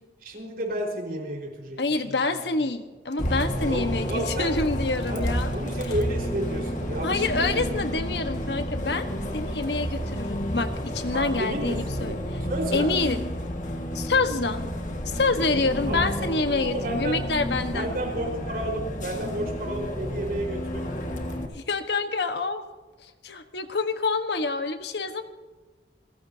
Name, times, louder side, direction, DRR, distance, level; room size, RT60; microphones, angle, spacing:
voice 1, 0.2-2.2 3.7-4.5 5.1-7.8 11.1-12.1 12.5-12.9 15.9-17.2 17.7-20.9, right 1 dB, 55° right, 0 dB, 4.7 m, -32 dB
voice 2, 1.8-5.5 7.0-9.1 9.3-12.2 12.7-13.2 13.9-14.7 15.1-17.9 21.5-22.6 23.2-25.2, left 3 dB, 75° left, 8 dB, 1.3 m, -27 dB
Bus, 3.2-21.5, equal, 45° left, 1.8 m, -31 dB
29.0 x 15.5 x 2.8 m, 1.3 s
head